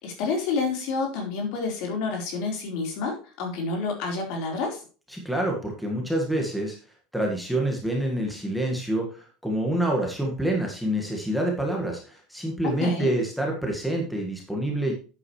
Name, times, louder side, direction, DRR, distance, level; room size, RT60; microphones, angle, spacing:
voice 1, 0.0-4.8 12.6-13.1, left 4 dB, 55° left, 2 dB, 4.2 m, -29 dB
voice 2, 5.1-6.8 7.1-14.9, right 1 dB, ahead, 0 dB, 1.8 m, -27 dB
11.0 x 8.7 x 3.2 m, 0.35 s
cardioid pair, 175°, 0 cm